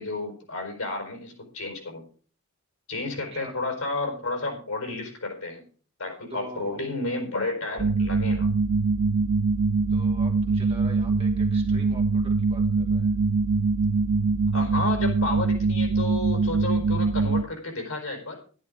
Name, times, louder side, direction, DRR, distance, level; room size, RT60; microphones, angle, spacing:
voice 1, 0.0-2.0 2.9-5.6 6.0-8.5 14.5-18.4, left 2 dB, 75° left, 3 dB, 4.8 m, -31 dB
voice 2, 3.3-3.6 6.3-6.9 9.9-13.1, right 1 dB, 25° right, 0 dB, 2.6 m, -43 dB
sound 1, 7.8-17.4, right 4 dB, 80° right, 0.6 m, -23 dB
11.5 x 10.5 x 4.9 m, 0.40 s
head